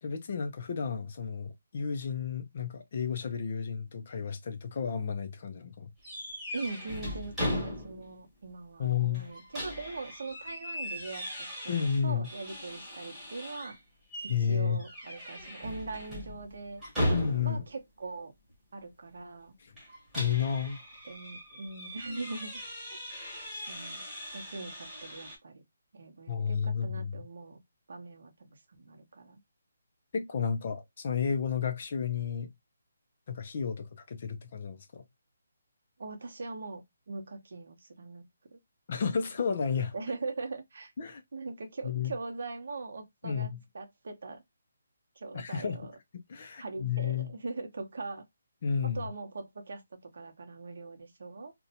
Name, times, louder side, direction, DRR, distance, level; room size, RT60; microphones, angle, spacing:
voice 1, 0.0-5.9 8.8-9.3 11.7-12.3 14.3-14.8 17.1-17.6 19.6-19.7 20.1-20.8 26.3-27.2 30.1-32.5 33.3-35.0 38.9-39.9 41.0-41.2 41.8-42.1 43.2-43.6 45.3-45.8 46.3-47.3 48.6-49.0, left 7 dB, 35° left, 0.3 m, -32 dB
sound 1, 6.0-8.2 8.5-8.6 9.1-13.8 14.1-14.4 14.8-17.7 19.8-25.4, equal, 5° right, 1.1 m, -38 dB
voice 2, 6.5-13.8 14.4-16.8 17.4-18.3 18.7-19.5 21.0-22.5 22.9-23.0 23.7-24.0 24.3-25.6 25.9-27.6 27.9-29.4 36.0-38.2 38.5-38.6 39.9-40.9 41.3-44.4 45.2-45.9 46.6-48.2 48.8-51.5, right 3 dB, 55° right, 0.7 m, -41 dB
2.5 x 2.1 x 2.7 m
hypercardioid pair, 175°, 0 cm